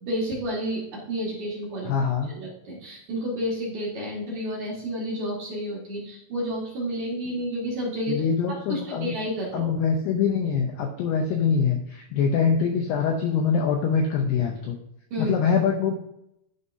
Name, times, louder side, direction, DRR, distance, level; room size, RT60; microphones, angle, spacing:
voice 1, 0.0-1.9 2.3-9.7 15.1-15.3, equal, 55° right, -5 dB, 2.2 m, -30 dB
voice 2, 1.9-2.3 8.1-9.1 9.5-14.8 15.2-15.9, left 6 dB, 90° left, 3 dB, 2.3 m, -24 dB
11.5 x 5.5 x 2.7 m, 0.79 s
omnidirectional pair, 5.7 m